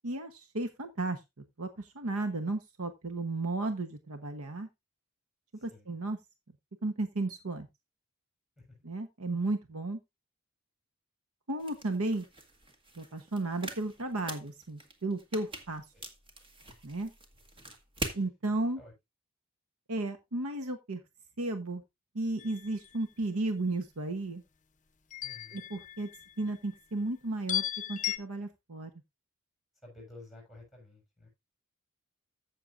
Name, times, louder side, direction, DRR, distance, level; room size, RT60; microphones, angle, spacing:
voice 1, 0.0-1.2 1.6-4.7 5.6-6.2 6.8-7.7 8.8-10.0 11.5-12.2 13.0-15.8 16.8-17.1 18.1-18.8 19.9-21.0 21.4-21.8 22.1-24.4 25.5-26.1 26.4-27.6 27.9-28.9, right 2 dB, 80° right, 1.1 m, -34 dB
voice 2, 5.6-5.9 8.6-8.9 15.9-16.0 18.5-18.9 25.2-25.7 29.8-31.3, left 2 dB, ahead, 7.0 m, -53 dB
sound 1, 11.6-18.2, right 1 dB, 25° right, 1.6 m, -44 dB
sound 2, 22.4-23.0 25.1-26.5 27.5-28.2, left 12 dB, 35° left, 0.7 m, -36 dB
15.0 x 6.6 x 2.6 m
head